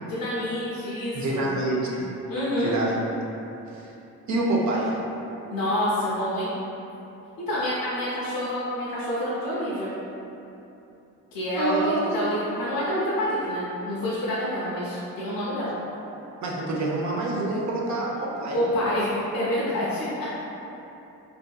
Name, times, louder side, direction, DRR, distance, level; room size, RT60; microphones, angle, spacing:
voice 1, 0.1-1.5 2.3-2.8 5.5-6.5 7.5-9.9 11.3-15.7 18.5-20.4, equal, 65° left, -8 dB, 0.7 m, -27 dB
voice 2, 1.1-2.1 2.6-3.0 3.7-3.9 4.3-4.9 11.6-12.2 16.4-18.6, right 2 dB, 50° right, -3 dB, 0.6 m, -26 dB
2.6 x 2.6 x 2.3 m, 2.9 s
supercardioid pair, 55°, 37 cm